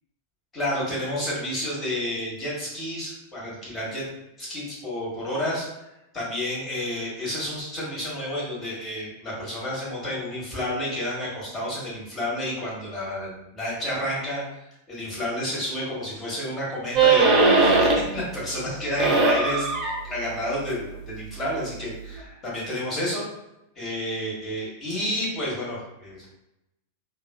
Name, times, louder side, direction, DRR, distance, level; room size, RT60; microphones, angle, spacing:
voice 1, 0.5-4.0 4.4-5.7 6.1-14.4 14.9-19.7 20.0-23.2 23.7-26.3, left 1 dB, 20° left, -6 dB, 1.2 m, -30 dB
sound 1, 17.0-18.2 18.6-22.2, right 3 dB, 25° right, 0.6 m, -22 dB
3.0 x 2.2 x 2.2 m, 0.90 s
figure-of-eight pair, 90°, 0 cm